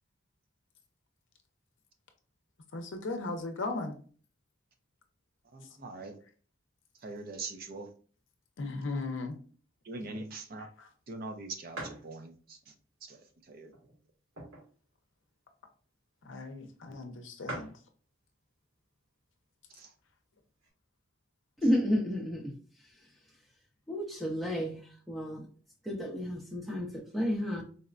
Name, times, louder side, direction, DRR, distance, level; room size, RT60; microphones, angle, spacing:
voice 1, 2.7-4.0 8.6-9.4 10.0-10.2 10.8-10.9 16.3-17.7, left 3 dB, 65° left, 0.6 m, -37 dB
voice 2, 5.5-6.1 7.0-7.9 9.9-10.7 11.1-12.3 13.5-13.7, right 3 dB, 45° right, 0.5 m, -41 dB
sound 1, 10.8-10.9 11.2-11.3 11.7-12.1 12.7-12.8 13.6-14.8 15.2-15.3 15.4-15.7 16.5-16.6 16.8-16.9 17.1-17.2 17.4-17.9 18.7-19.1 19.6-19.7 19.9-20.7, right 1 dB, 85° right, 1.4 m, -43 dB
voice 3, 21.6-22.5 23.9-24.8 25.1-25.5 25.8-27.6, equal, ahead, 0.7 m, -31 dB
4.1 x 2.2 x 2.4 m
head